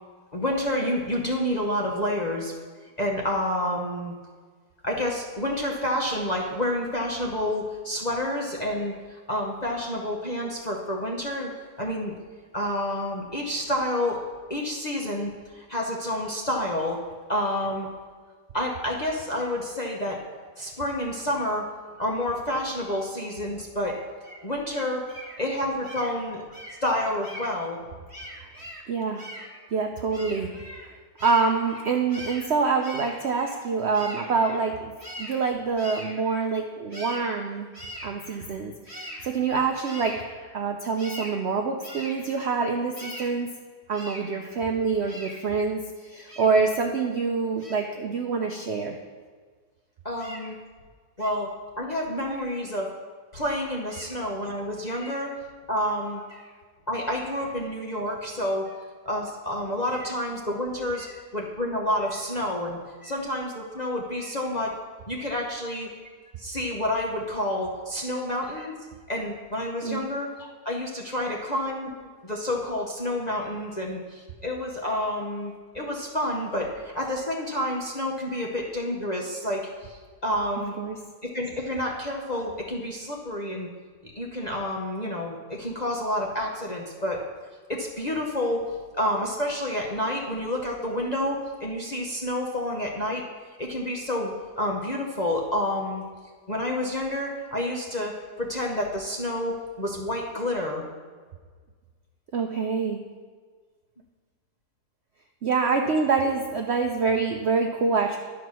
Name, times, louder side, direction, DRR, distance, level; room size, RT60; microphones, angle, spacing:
voice 1, 0.3-2.5 3.0-4.1 4.8-11.5 11.8-12.1 12.5-14.2 14.5-17.0 17.3-17.9 18.5-20.2 20.6-21.7 22.0-24.0 24.4-25.0 25.4-26.4 26.8-27.8 50.0-50.6 51.2-52.9 53.3-55.3 55.7-56.2 56.9-58.7 59.0-61.1 61.3-62.8 63.0-64.7 65.1-65.9 66.4-68.8 69.1-71.9 72.2-80.7 81.2-83.7 84.1-87.2 87.7-88.6 89.0-93.2 93.6-96.0 96.5-100.9, left 1 dB, 35° left, -2 dB, 0.7 m, -29 dB
voice 2, 28.1-43.5 43.9-49.0 50.2-50.5 51.2-51.3 53.9-54.2 55.0-55.1 61.0-61.1 63.0-63.2 64.2-64.3 69.8-70.1 80.8-81.0 102.3-103.0 105.4-108.2, right 4 dB, 65° right, 3 dB, 0.6 m, -27 dB
11.0 x 4.9 x 6.1 m, 1.5 s
omnidirectional pair, 1.8 m